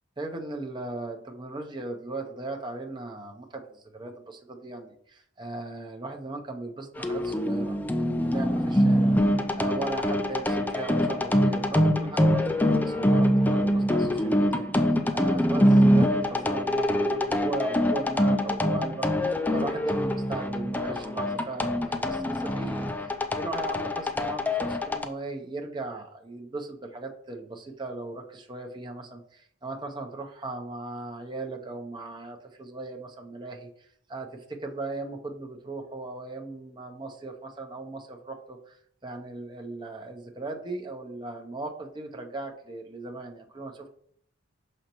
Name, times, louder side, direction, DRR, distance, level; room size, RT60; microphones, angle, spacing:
voice 1, 0.2-9.2 9.6-14.7 15.1-38.8 39.0-43.9, right 2 dB, 25° right, 2 dB, 0.7 m, -38 dB
sound 1, 7.0-25.1, equal, 10° left, 0.3 m, -24 dB
6.4 x 5.3 x 3.0 m, 0.65 s
head